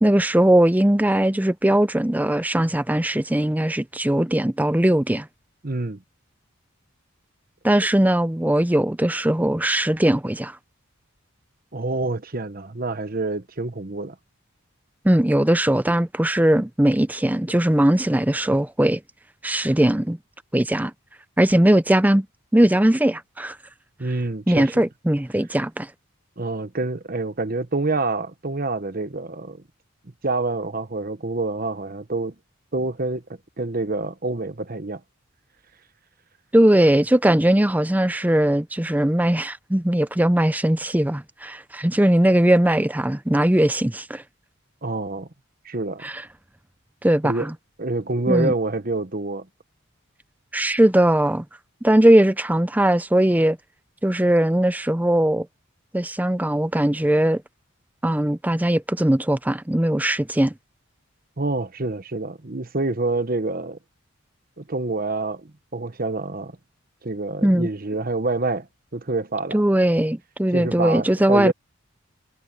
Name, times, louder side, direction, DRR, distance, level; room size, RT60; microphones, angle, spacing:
voice 1, 0.0-5.3 7.6-10.6 15.0-19.0 19.4-20.2 20.5-20.9 21.4-22.3 22.5-23.6 24.5-25.9 36.5-44.2 46.0-46.2 47.0-47.5 48.3-48.5 50.5-51.4 51.8-53.6 54.0-55.5 55.9-57.4 58.0-60.5 67.4-67.7 69.5-71.5, right 1 dB, 10° right, 0.5 m, -19 dB
voice 2, 5.6-6.0 11.7-14.2 24.0-24.8 26.4-29.6 30.2-32.3 32.7-33.2 33.6-35.0 44.8-45.3 45.6-46.1 47.2-47.5 47.8-49.5 61.4-63.8 64.6-66.5 67.0-68.7 68.9-69.5 70.5-71.5, right 2 dB, 45° right, 1.1 m, -27 dB
head